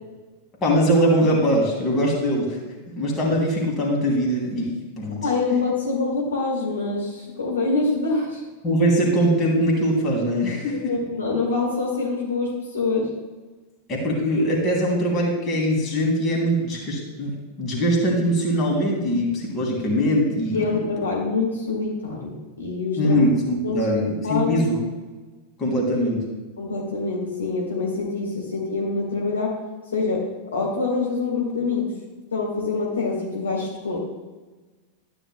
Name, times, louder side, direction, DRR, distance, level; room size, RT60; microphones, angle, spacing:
voice 1, 0.6-2.6 3.0-4.7 5.0-5.2 8.6-10.9 13.9-20.6 23.0-24.8 25.6-26.2, equal, 25° left, -2 dB, 2.9 m, -22 dB
voice 2, 5.2-8.4 10.7-13.1 20.5-23.1 23.6-23.8 24.2-24.6 26.6-29.5 29.9-30.2 30.5-31.9 32.3-34.0, left 3 dB, 70° left, -3 dB, 2.1 m, -25 dB
12.5 x 10.0 x 2.3 m, 1.3 s
figure-of-eight pair, 90°, 0 cm